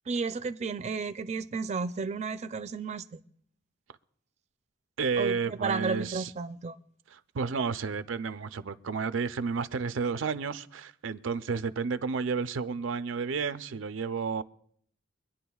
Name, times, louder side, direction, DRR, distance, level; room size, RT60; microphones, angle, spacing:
voice 1, 0.1-3.2 5.2-6.8, right 4 dB, 35° right, 0.4 m, -33 dB
voice 2, 5.0-6.3 7.1-14.4, right 5 dB, 90° right, 0.5 m, -31 dB
24.5 x 10.5 x 2.3 m
head